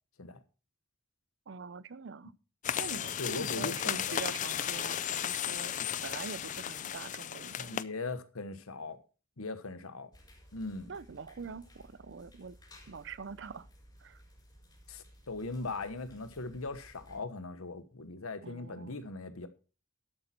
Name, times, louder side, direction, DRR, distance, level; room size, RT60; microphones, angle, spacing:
voice 1, 1.5-2.3 2.7-5.7 6.0-7.8 10.9-12.6 12.9-13.7 14.0-14.2 18.4-19.0, right 5 dB, 55° right, 0.5 m, -44 dB
sound 1, 2.6-7.8, left 9 dB, 35° left, 0.4 m, -35 dB
voice 2, 3.2-4.2 7.6-9.0 9.4-10.1 10.5-10.9 14.9-19.5, left 3 dB, 90° left, 1.2 m, -39 dB
sound 2, 10.1-17.2, equal, 20° left, 4.3 m, -57 dB
12.0 x 8.3 x 4.4 m
head